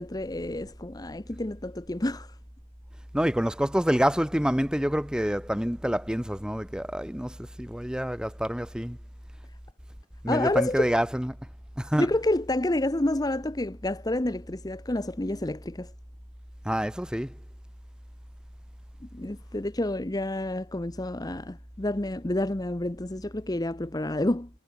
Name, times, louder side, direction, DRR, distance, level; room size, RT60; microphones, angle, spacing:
voice 1, 0.0-2.4 10.3-10.9 12.0-15.9 19.1-24.5, left 1 dB, 20° left, 0.9 m, -29 dB
voice 2, 3.1-9.0 10.2-11.3 11.8-12.1 16.6-17.3, equal, 5° right, 1.2 m, -27 dB
head